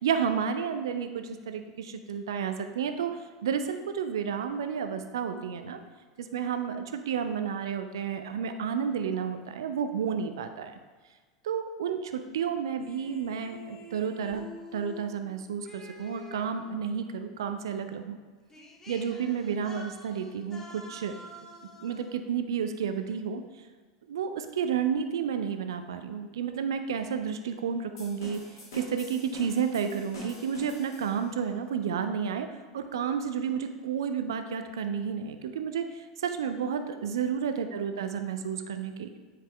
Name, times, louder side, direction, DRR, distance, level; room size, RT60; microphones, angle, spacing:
voice 1, 0.0-3.1 3.4-5.8 6.2-10.7 11.4-18.2 18.9-20.6 20.9-21.1 21.8-23.4 24.1-28.4 28.7-32.5 32.7-35.8 36.2-39.1, right 7 dB, 65° right, 8 dB, 0.6 m, -31 dB
sound 1, 12.8-16.9 18.1-18.2 18.5-22.1, equal, 20° left, 1.1 m, -48 dB
sound 2, 28.0-31.4, left 1 dB, 65° left, 2.4 m, -45 dB
10.0 x 5.1 x 3.3 m, 1.4 s
figure-of-eight pair, 85°, 3 cm